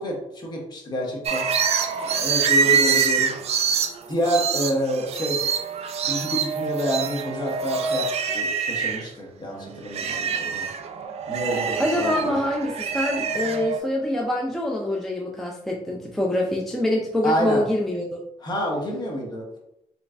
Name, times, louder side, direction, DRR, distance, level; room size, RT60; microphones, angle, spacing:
voice 1, 0.0-1.4 2.2-3.3 4.1-5.4 6.0-10.7 11.3-12.4 17.2-17.6 18.4-19.4, equal, 35° left, -1 dB, 1.0 m, -28 dB
sound 1, 1.3-9.1 9.5-13.8, right 6 dB, 65° right, 0.4 m, -25 dB
voice 2, 11.8-18.2, left 1 dB, 5° left, -2 dB, 0.4 m, -25 dB
3.3 x 3.1 x 2.5 m, 0.80 s
cardioid pair, 115°, 12 cm